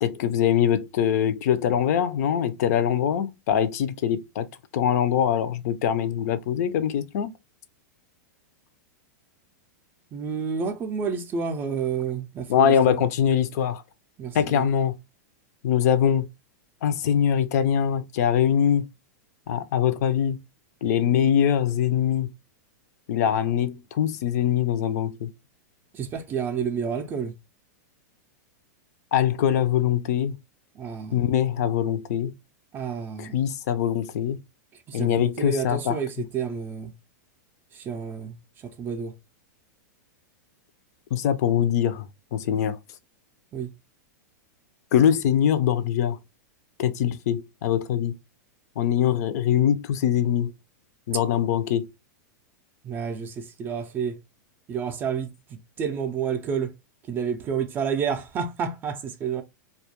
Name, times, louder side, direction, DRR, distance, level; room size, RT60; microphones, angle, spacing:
voice 1, 0.0-4.5 4.7-7.3 12.5-13.8 14.3-15.0 15.6-16.3 16.8-18.9 19.5-20.4 20.8-22.3 23.1-25.3 29.1-30.4 31.1-32.3 33.2-34.4 34.9-36.2 41.1-42.1 42.3-42.8 44.9-46.2 46.8-48.2 48.8-50.5 51.1-51.9, left 9 dB, 60° left, 0.4 m, -23 dB
voice 2, 10.1-13.0 14.2-14.7 25.9-27.3 30.8-31.3 32.7-33.3 34.9-36.9 37.8-38.3 38.8-39.1 43.5-43.7 52.8-54.2 54.7-55.3 55.8-56.7 57.1-59.4, right 6 dB, 20° right, 0.3 m, -29 dB
2.3 x 2.1 x 2.8 m
supercardioid pair, 145°, 10 cm